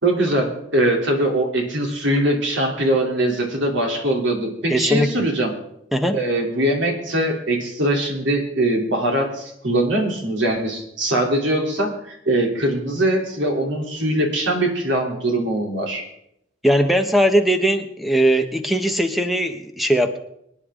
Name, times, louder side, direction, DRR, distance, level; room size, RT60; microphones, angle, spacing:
voice 1, 0.0-5.5 6.1-16.0, right 1 dB, 80° right, 1 dB, 3.2 m, -22 dB
voice 2, 4.7-5.1 5.9-6.2 16.6-20.2, right 1 dB, ahead, 7 dB, 0.9 m, -19 dB
24.0 x 9.8 x 3.7 m, 0.76 s
head